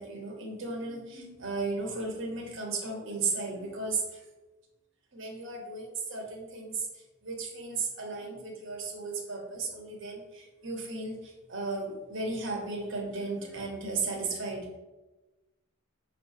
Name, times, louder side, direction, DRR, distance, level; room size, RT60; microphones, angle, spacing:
voice 1, 0.0-4.2 5.1-14.8, right 3 dB, 60° right, 2 dB, 1.2 m, -35 dB
5.6 x 3.3 x 5.3 m, 1.1 s
head